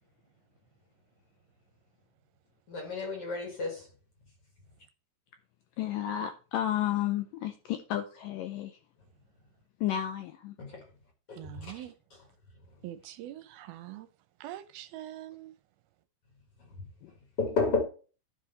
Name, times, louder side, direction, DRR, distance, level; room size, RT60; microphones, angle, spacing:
voice 1, 2.7-3.8 10.6-10.8 11.3-11.4 17.4-17.8, left 4 dB, 50° left, 2.0 m, -30 dB
voice 2, 5.8-8.8 9.8-10.6 17.0-17.1, left 11 dB, 75° left, 2.0 m, -32 dB
voice 3, 11.4-11.9 12.8-14.1 14.4-15.5, right 13 dB, 80° right, 2.4 m, -43 dB
12.5 x 4.8 x 4.1 m
omnidirectional pair, 4.6 m